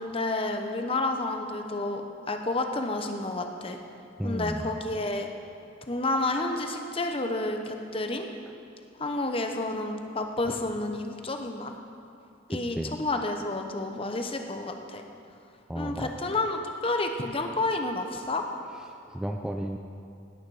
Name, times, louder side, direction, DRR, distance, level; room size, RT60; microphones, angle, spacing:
voice 1, 0.0-2.0 2.3-3.8 4.2-5.3 5.9-8.3 9.0-11.8 12.5-15.0 15.7-18.5, left 2 dB, 30° left, 5 dB, 0.9 m, -30 dB
voice 2, 4.2-4.7 12.5-12.9 15.7-16.1 19.1-19.8, equal, 5° right, 3 dB, 0.4 m, -33 dB
17.0 x 9.4 x 4.9 m, 2.6 s
head